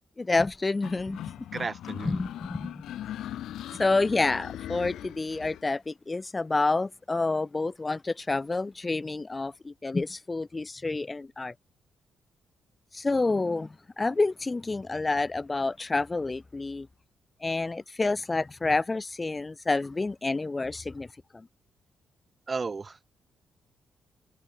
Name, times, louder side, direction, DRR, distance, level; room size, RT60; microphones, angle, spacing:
voice 1, 0.2-1.2 2.0-2.7 3.8-11.5 12.9-16.9 17.4-21.1 21.3-21.4, left 3 dB, 30° left, 0.5 m, -28 dB
sound 1, 0.8-5.6, left 12 dB, 70° left, 0.9 m, -39 dB
voice 2, 1.5-2.3 22.5-23.0, right 4 dB, 40° right, 2.1 m, -34 dB
hypercardioid pair, 45°, 0 cm